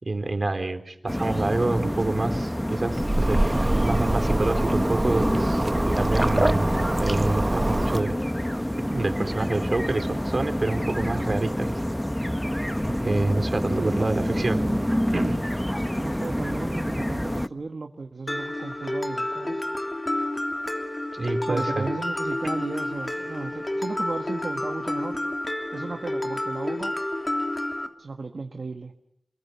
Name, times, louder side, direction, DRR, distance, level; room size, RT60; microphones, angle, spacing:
voice 1, 0.0-8.2 8.9-11.8 12.9-14.6 15.1-15.4 21.1-21.9, right 2 dB, 60° right, 7 dB, 3.7 m, -27 dB
sound 1, 1.1-17.5, equal, 10° left, 1.0 m, -27 dB
sound 2, 2.9-8.0, right 1 dB, 30° right, 1.1 m, -24 dB
voice 2, 13.7-14.9 16.0-19.6 21.5-25.2 25.7-26.9 28.0-28.9, right 3 dB, 80° right, 5 dB, 1.5 m, -34 dB
Mallet percussion, 18.3-27.9, left 1 dB, 35° left, 3.1 m, -30 dB
29.0 x 22.0 x 8.3 m, 0.77 s
cardioid pair, 40°, 0 cm